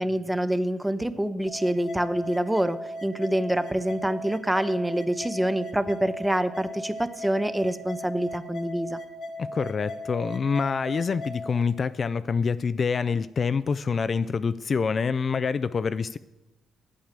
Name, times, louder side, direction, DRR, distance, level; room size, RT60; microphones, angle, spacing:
voice 1, 0.0-9.0, right 1 dB, 5° right, 13 dB, 0.7 m, -26 dB
sound 1, 1.5-11.5, equal, 60° left, 1.3 m, -38 dB
voice 2, 9.4-16.2, left 5 dB, 40° left, 14 dB, 0.3 m, -26 dB
8.8 x 8.6 x 7.4 m, 1.0 s
cardioid pair, 90°, 0 cm